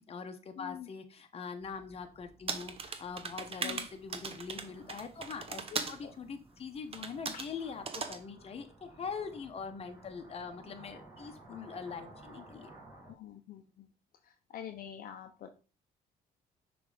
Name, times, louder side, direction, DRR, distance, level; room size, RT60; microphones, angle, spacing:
voice 1, 0.0-12.7, left 5 dB, 35° left, 6 dB, 1.0 m, -43 dB
voice 2, 0.6-0.9 3.6-3.9 5.7-6.1 7.3-7.5 12.4-12.5 13.1-13.9 14.2-15.5, left 9 dB, 55° left, 5 dB, 0.8 m, -46 dB
sound 1, 1.6-13.1, right 2 dB, 20° right, 2.1 m, -56 dB
sound 2, 2.5-6.0 6.9-7.5 7.9-8.2, right 5 dB, 35° right, 0.8 m, -38 dB
6.0 x 3.5 x 4.9 m, 0.34 s
cardioid pair, 110°, 17 cm